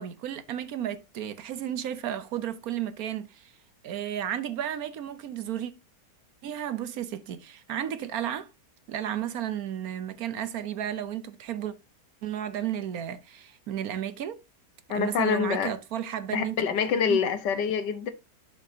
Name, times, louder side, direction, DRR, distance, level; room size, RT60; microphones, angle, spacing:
voice 1, 0.0-3.5 3.8-5.7 6.4-8.5 8.9-11.7 12.2-14.4 14.9-16.6 17.1-17.2, right 10 dB, 65° right, 1.1 m, -33 dB
voice 2, 14.9-15.7 16.3-18.1, left 7 dB, 85° left, 1.7 m, -26 dB
11.5 x 5.4 x 2.7 m
omnidirectional pair, 1.8 m